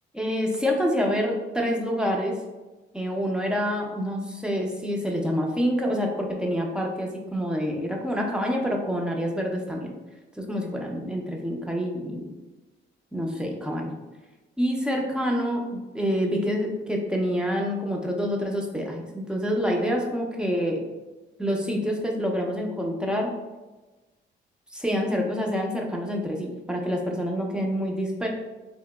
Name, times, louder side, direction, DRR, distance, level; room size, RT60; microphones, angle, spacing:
voice 1, 0.1-2.4 2.9-9.9 10.4-12.3 13.1-14.0 14.6-20.8 21.4-23.3 24.7-28.3, equal, 5° right, 0 dB, 0.6 m, -27 dB
3.3 x 2.9 x 2.2 m, 1.1 s
cardioid pair, 90°, 20 cm